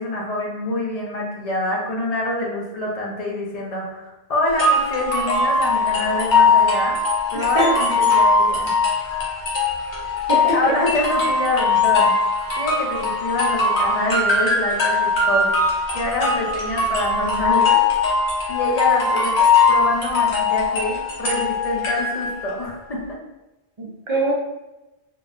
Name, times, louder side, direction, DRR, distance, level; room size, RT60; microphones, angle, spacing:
voice 1, 0.0-7.0 7.3-8.7 10.5-12.2 12.5-15.5 15.9-17.8 18.5-23.0, left 2 dB, 40° left, -3 dB, 0.7 m, -26 dB
sound 1, 4.6-22.5, left 3 dB, 75° left, 1.1 m, -20 dB
voice 2, 7.3-7.7 10.3-10.7 23.8-24.3, right 2 dB, 30° right, -4 dB, 0.7 m, -23 dB
3.8 x 2.6 x 2.4 m, 1.0 s
omnidirectional pair, 1.1 m